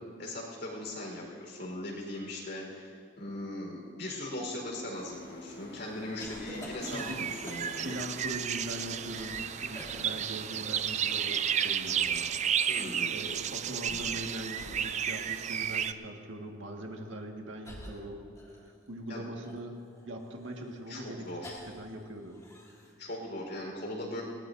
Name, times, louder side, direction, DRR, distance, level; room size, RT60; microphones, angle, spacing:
voice 1, 0.2-8.0 12.7-13.1 19.1-19.2 20.9-21.6 23.0-24.2, left 1 dB, 60° left, -1 dB, 4.2 m, -39 dB
sound 1, 4.9-12.4, left 2 dB, 80° left, 3.5 m, -52 dB
sound 2, 6.2-7.9 8.7-9.5 9.7-10.1 11.2-12.2 13.7-14.3 14.6-14.8 15.4-15.6 16.7-16.9 17.6-18.9 19.4-21.9 22.2-22.9, equal, 15° left, 2.9 m, -48 dB
sound 3, 6.8-15.9, right 9 dB, 35° right, 0.4 m, -32 dB
voice 2, 6.9-7.2 7.8-12.7 13.1-18.3 18.6-19.7 20.0-21.3 21.7-22.4, right 1 dB, 80° right, 1 dB, 1.7 m, -41 dB
20.5 x 19.0 x 2.6 m, 2.3 s
head